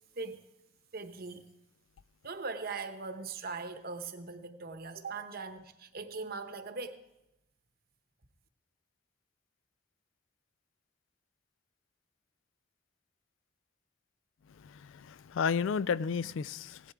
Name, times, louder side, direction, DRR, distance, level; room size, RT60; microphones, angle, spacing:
voice 1, 0.9-1.4 2.2-7.0, right 4 dB, 50° right, 1.0 m, -40 dB
voice 2, 14.6-16.9, left 6 dB, 70° left, 0.3 m, -32 dB
17.0 x 11.5 x 3.5 m
head